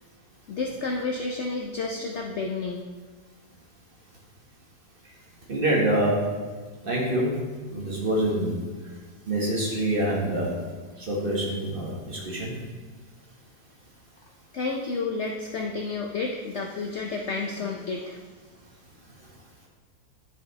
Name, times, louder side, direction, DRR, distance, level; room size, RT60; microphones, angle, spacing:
voice 1, 0.5-2.9 14.5-18.2, left 3 dB, 65° left, 1 dB, 0.7 m, -30 dB
voice 2, 5.5-6.2 6.8-7.3 7.7-8.5 9.3-10.5 11.0-12.5, right 1 dB, 35° right, -4 dB, 1.5 m, -25 dB
10.0 x 5.3 x 3.2 m, 1.4 s
omnidirectional pair, 1.7 m